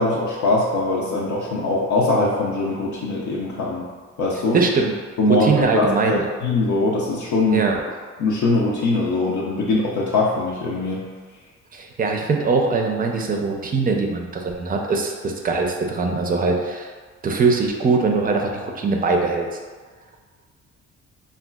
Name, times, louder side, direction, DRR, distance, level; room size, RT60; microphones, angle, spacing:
voice 1, 0.0-3.9 4.2-4.6 5.2-7.7 8.2-11.0, left 2 dB, 75° left, -5 dB, 0.5 m, -22 dB
voice 2, 4.5-4.9 5.3-6.2 7.5-7.8 11.7-16.9 17.2-19.5, right 4 dB, 30° right, 1 dB, 0.4 m, -21 dB
3.6 x 2.3 x 2.2 m, 1.5 s
cardioid pair, 90°, 30 cm